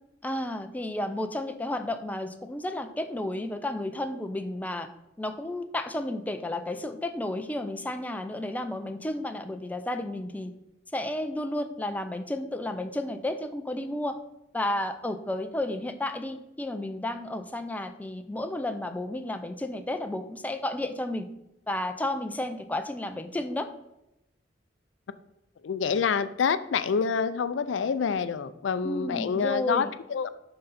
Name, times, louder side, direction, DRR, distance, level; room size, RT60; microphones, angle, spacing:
voice 1, 0.2-4.9 5.2-10.5 10.9-14.2 14.5-21.3 21.7-23.7 28.8-29.9, left 1 dB, 10° left, 7 dB, 0.4 m, -32 dB
voice 2, 25.6-30.3, left 6 dB, 75° left, 14 dB, 0.4 m, -27 dB
11.0 x 3.9 x 4.1 m, 0.90 s
head